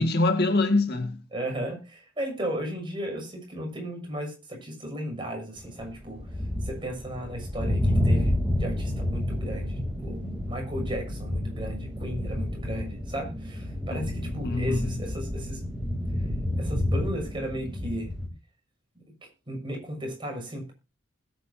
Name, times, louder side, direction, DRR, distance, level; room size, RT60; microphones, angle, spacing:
voice 1, 0.0-1.2 13.9-15.0, left 2 dB, 50° left, 2.1 m, -25 dB
voice 2, 1.3-6.2 6.6-15.6 16.5-18.1 19.5-20.7, right 1 dB, 25° right, 6.8 m, -35 dB
sound 1, 5.6-18.3, left 1 dB, 5° right, 3.4 m, -29 dB
20.5 x 9.4 x 2.8 m
head